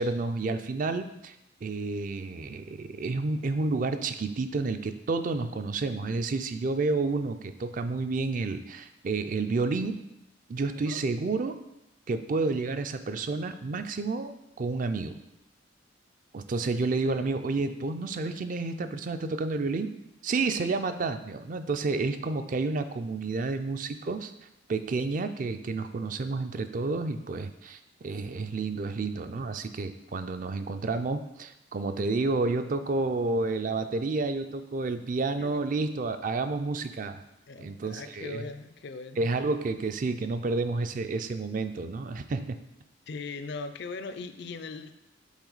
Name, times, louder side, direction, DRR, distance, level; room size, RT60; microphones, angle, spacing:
voice 1, 0.0-1.3 1.6-10.0 10.5-11.6 12.1-15.2 16.3-19.9 20.2-24.3 24.7-37.2 37.6-38.4 39.2-42.6, right 3 dB, 40° right, 9 dB, 0.4 m, -30 dB
voice 2, 10.7-11.0 16.6-17.3 35.4-35.7 37.5-39.3 43.1-44.9, left 4 dB, 60° left, 10 dB, 0.4 m, -40 dB
7.2 x 4.3 x 3.9 m, 0.86 s
head